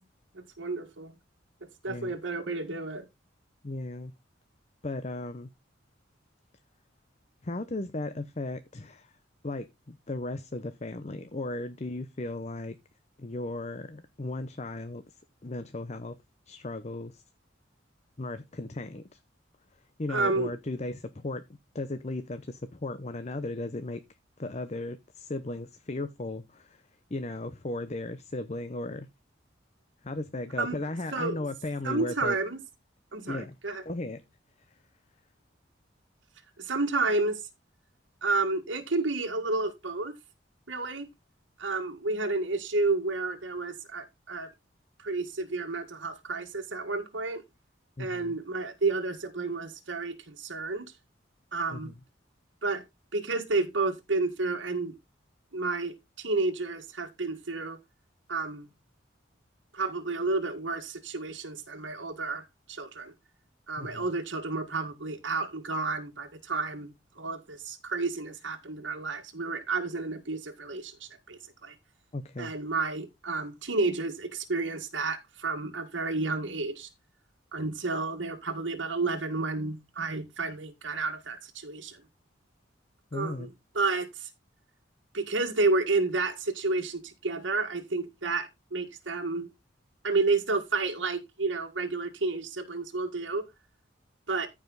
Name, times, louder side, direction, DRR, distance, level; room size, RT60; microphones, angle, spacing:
voice 1, 0.3-1.1 1.8-3.1 20.1-20.5 30.6-30.8 31.1-31.5 31.8-32.6 33.1-33.8 36.6-37.5 38.2-40.1 40.7-41.1 41.6-44.5 45.0-47.4 48.0-50.9 51.5-51.9 52.6-52.8 53.1-54.9 55.5-57.8 58.3-58.7 59.7-63.1 63.7-66.9 67.2-71.8 72.4-76.9 77.5-82.0 83.1-84.3 85.1-89.5 90.0-93.4 94.3-94.5, right 3 dB, 75° right, 1.7 m, -31 dB
voice 2, 3.6-4.1 4.8-5.5 7.4-9.1 9.4-12.8 13.2-15.0 15.4-16.1 16.5-17.2 18.2-19.0 20.0-21.4 21.7-24.0 24.4-26.8 27.1-29.1 30.0-32.4 33.3-33.5 33.9-34.2 48.0-48.3 51.7-51.9 63.8-64.1 72.1-72.5 83.1-83.5, left 2 dB, 35° left, 0.7 m, -36 dB
14.0 x 5.0 x 4.0 m
head